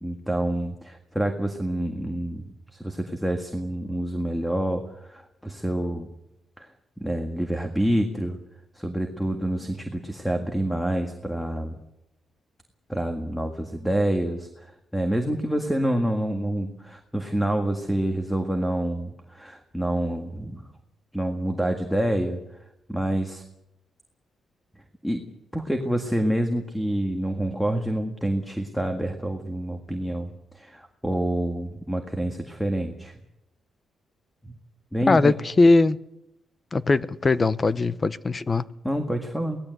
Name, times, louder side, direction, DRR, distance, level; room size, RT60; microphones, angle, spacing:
voice 1, 0.0-6.1 6.6-6.7 7.0-8.4 8.7-11.8 12.9-20.7 21.1-23.4 24.8-33.2 34.9-35.3 38.8-39.6, right 1 dB, ahead, 1.8 m, -27 dB
voice 2, 35.1-36.0 36.7-38.7, left 3 dB, 25° left, 0.8 m, -20 dB
24.0 x 18.0 x 7.9 m
cardioid pair, 140°, 0 cm